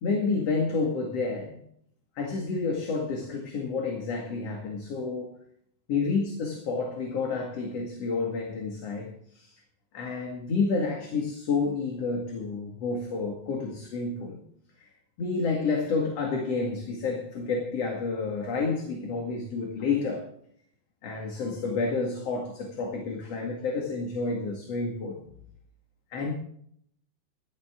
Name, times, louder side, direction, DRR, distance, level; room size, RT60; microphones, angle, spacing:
voice 1, 0.0-1.6 2.2-5.3 5.9-9.5 9.9-14.4 15.2-20.3 21.0-25.2 26.1-26.3, left 4 dB, 45° left, 0 dB, 2.8 m, -29 dB
16.5 x 12.0 x 3.8 m, 0.65 s
omnidirectional pair, 4.3 m